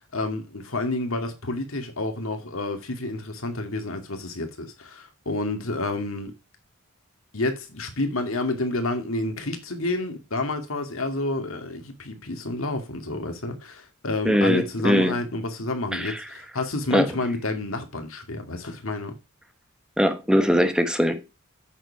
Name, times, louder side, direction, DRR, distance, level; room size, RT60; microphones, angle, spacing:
voice 1, 0.0-6.3 7.3-19.2, left 2 dB, 85° left, 2.4 m, -29 dB
voice 2, 14.2-15.1 15.9-16.2 16.9-17.1 20.0-21.3, equal, 5° right, 1.1 m, -21 dB
8.8 x 6.8 x 4.7 m
head